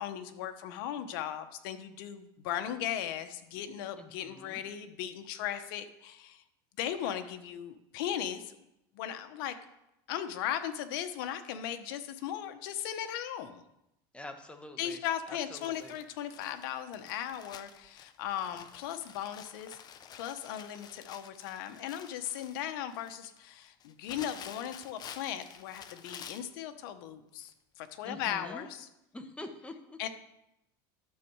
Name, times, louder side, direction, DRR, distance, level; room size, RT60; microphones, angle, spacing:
voice 1, 0.0-6.4 6.8-8.6 8.9-9.6 10.1-13.6 14.8-19.8 20.1-28.9 30.0-30.1, left 10 dB, 75° left, 9 dB, 1.1 m, -37 dB
voice 2, 4.0-4.6 14.1-15.0 15.3-15.9 28.0-28.6 29.1-30.0, left 2 dB, 10° left, 6 dB, 1.3 m, -46 dB
Crumpling crinkling, 15.5-26.5 27.4-27.5 27.9-28.0, left 8 dB, 35° left, 0.8 m, -50 dB
12.0 x 7.4 x 4.7 m, 0.85 s
supercardioid pair, 125°, 12 cm